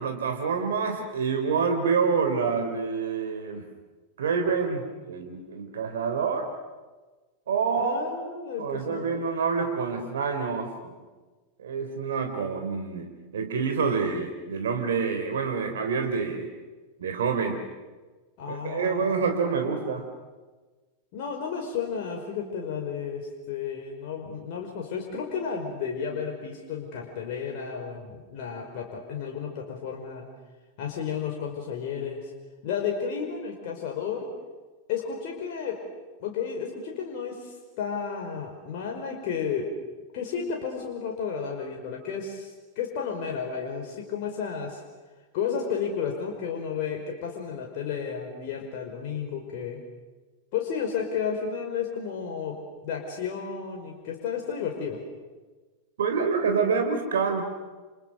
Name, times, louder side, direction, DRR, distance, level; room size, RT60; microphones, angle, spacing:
voice 1, 0.0-3.7 4.2-4.8 5.1-6.5 7.5-8.2 8.6-10.9 11.6-16.5 17.0-17.6 18.5-20.1 56.0-57.4, right 5 dB, 70° right, 5 dB, 3.5 m, -27 dB
voice 2, 7.8-9.2 18.4-19.1 19.6-19.9 21.1-30.2 30.8-32.3 32.6-34.3 34.9-35.8 36.2-39.7 40.1-44.8 45.3-49.8 50.5-55.0, left 6 dB, 50° left, 1 dB, 5.2 m, -32 dB
30.0 x 29.5 x 6.7 m, 1.3 s
figure-of-eight pair, 90°, 0 cm